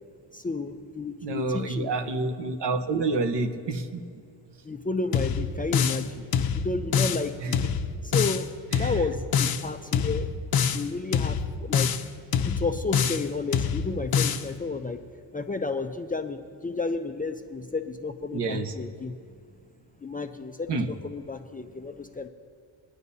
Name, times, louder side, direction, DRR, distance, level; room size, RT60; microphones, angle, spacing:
voice 1, 0.3-1.9 4.6-6.3 6.6-7.6 8.0-8.5 8.8-10.3 10.7-11.9 12.4-15.0 15.3-19.1 20.0-20.8 21.0-22.3, left 3 dB, 15° left, 5 dB, 0.5 m, -32 dB
voice 2, 1.2-4.0 7.4-7.5 8.7-9.0 18.3-18.7 20.7-20.9, right 3 dB, 55° right, 7 dB, 1.1 m, -28 dB
sound 1, 5.1-6.1 6.3-7.2 7.5-8.4 8.7-9.6 9.9-10.8 11.1-12.0 12.3-13.3 13.5-14.4, left 7 dB, 45° left, 0.8 m, -25 dB
24.0 x 9.7 x 2.8 m, 2.4 s
cardioid pair, 95°, 49 cm